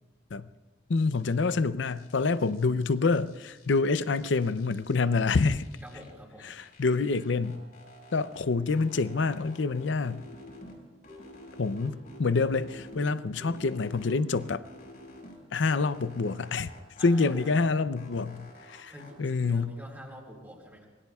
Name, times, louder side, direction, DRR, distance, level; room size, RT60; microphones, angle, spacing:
voice 1, 0.9-5.7 6.4-7.6 8.1-10.2 11.6-14.6 15.5-16.7 17.0-18.9 19.2-19.7, left 4 dB, 70° left, 14 dB, 0.6 m, -27 dB
sound 1, 1.0-1.5 1.8-3.8 4.1-6.1 6.4-8.4 8.7-10.8 11.0-13.1 13.4-15.4 15.7-17.7 18.0-19.1, left 1 dB, 50° left, 5.4 m, -50 dB
voice 2, 5.8-6.5 17.0-17.8 18.9-20.9, equal, 10° right, -3 dB, 3.9 m, -47 dB
26.0 x 22.0 x 2.4 m, 1.2 s
head